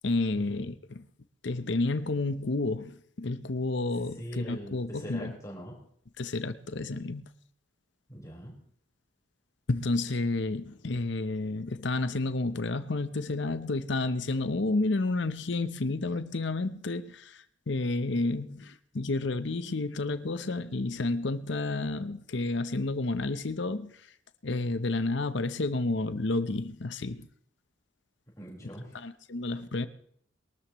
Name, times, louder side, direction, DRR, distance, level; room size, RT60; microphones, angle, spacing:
voice 1, 0.0-1.0 1.4-5.3 6.2-7.3 9.7-23.9 24.4-27.3 28.9-29.9, left 2 dB, 60° left, 0.8 m, -30 dB
voice 2, 4.2-5.8 8.1-8.6 28.4-29.0, equal, 15° left, 4.7 m, -42 dB
22.5 x 13.0 x 3.1 m
head